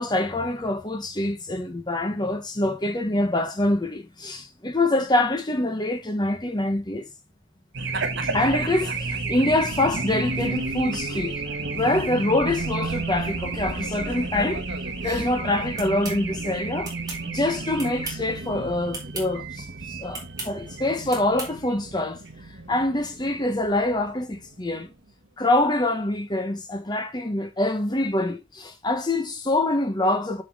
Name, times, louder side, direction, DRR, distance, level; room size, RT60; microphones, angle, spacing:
voice 1, 0.0-7.1 8.3-11.4 11.7-14.6 15.0-16.9 17.3-22.2 22.7-24.9 25.4-30.4, left 2 dB, 20° left, 1.1 m, -25 dB
Race car auto racing / Alarm, 7.7-24.7, right 3 dB, 55° right, 1.4 m, -31 dB
sound 1, 15.8-16.2 16.8-17.2 17.8-18.3 18.9-19.3 20.1-20.5 21.1-21.5, right 3 dB, 20° right, 2.5 m, -35 dB
7.1 x 6.0 x 3.5 m
head